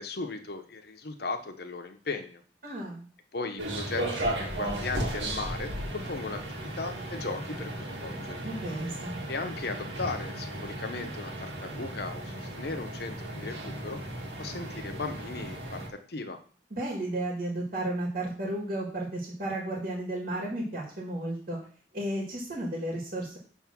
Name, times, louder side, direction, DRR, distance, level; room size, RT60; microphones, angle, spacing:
voice 1, 0.0-2.4 3.3-8.5 9.3-14.0 14.4-16.4, left 3 dB, 60° left, 7 dB, 0.8 m, -37 dB
voice 2, 2.6-3.0 8.4-9.2 16.7-21.6 21.9-23.4, right 1 dB, 50° right, -2 dB, 1.8 m, -33 dB
sound 1, 3.6-15.9, right 1 dB, 80° right, 1.9 m, -35 dB
6.3 x 3.6 x 6.0 m, 0.43 s
head